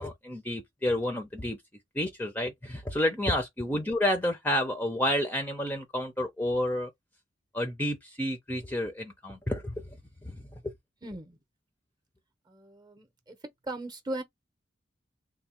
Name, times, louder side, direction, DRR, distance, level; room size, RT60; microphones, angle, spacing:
voice 1, 0.0-1.6 1.9-6.9 7.5-10.0 10.2-10.5, left 1 dB, 10° left, 0.6 m, -30 dB
voice 2, 11.0-11.4 12.5-13.4 13.6-14.2, right 1 dB, 20° right, 0.8 m, -38 dB
3.5 x 2.2 x 4.2 m
head